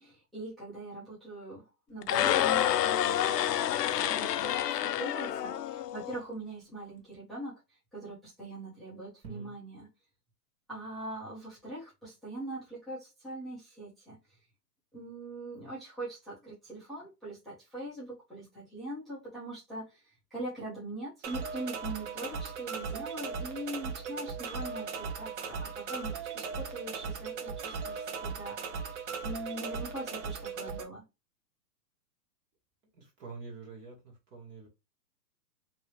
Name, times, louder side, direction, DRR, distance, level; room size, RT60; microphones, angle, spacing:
voice 1, 0.0-3.7 3.9-7.6 7.9-9.9 10.7-14.2 14.9-20.0 20.3-28.6 29.2-31.0, right 1 dB, ahead, 0.5 m, -42 dB
sound 1, 2.0-6.2, left 11 dB, 80° left, 0.6 m, -28 dB
sound 2, 21.2-30.8, right 5 dB, 45° right, 0.8 m, -38 dB
voice 2, 32.9-34.7, right 4 dB, 25° right, 1.3 m, -46 dB
3.0 x 2.8 x 3.0 m
hypercardioid pair, 150°, 48 cm